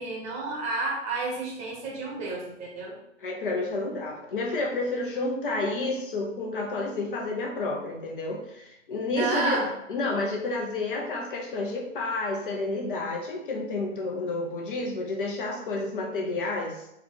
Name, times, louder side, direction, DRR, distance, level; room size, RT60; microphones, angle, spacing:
voice 1, 0.0-2.9 9.1-9.7, right 3 dB, 15° right, -4 dB, 1.0 m, -30 dB
voice 2, 3.2-9.6 9.9-16.8, left 2 dB, 40° left, 0 dB, 0.8 m, -30 dB
4.5 x 2.4 x 3.6 m, 0.83 s
figure-of-eight pair, 120°, 39 cm